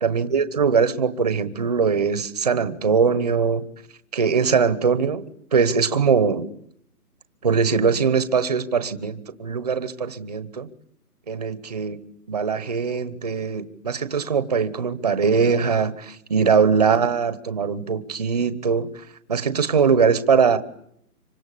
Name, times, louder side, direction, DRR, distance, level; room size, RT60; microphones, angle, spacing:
voice 1, 0.0-3.6 4.1-6.5 7.4-10.7 11.3-12.0 12.3-19.0 19.3-20.6, right 5 dB, 25° right, 13 dB, 1.1 m, -21 dB
26.5 x 24.5 x 8.5 m, 0.71 s
hypercardioid pair, 175°, 46 cm